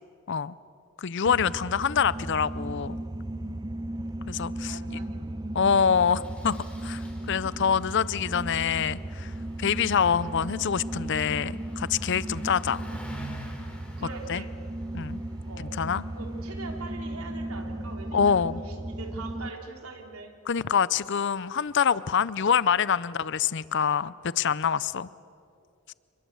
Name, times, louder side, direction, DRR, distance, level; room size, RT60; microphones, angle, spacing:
voice 1, 1.0-3.0 4.3-5.0 5.5-6.6 6.8-12.8 14.3-14.4 14.9-15.2 15.8-16.0 18.1-18.6 20.5-25.1 25.9-26.0, left 7 dB, 55° left, 19 dB, 0.5 m, -26 dB
sound 1, 1.2-19.5, right 1 dB, 20° right, 0.7 m, -36 dB
Engine starting, 3.9-4.1 4.3-4.4 4.7-4.9 5.8-16.8, right 1 dB, 5° left, 3.5 m, -49 dB
voice 2, 4.7-5.5 14.0-14.5 15.4-15.7 16.1-20.3, right 3 dB, 80° right, 2 dB, 3.4 m, -43 dB
29.5 x 22.0 x 8.2 m, 2.5 s
head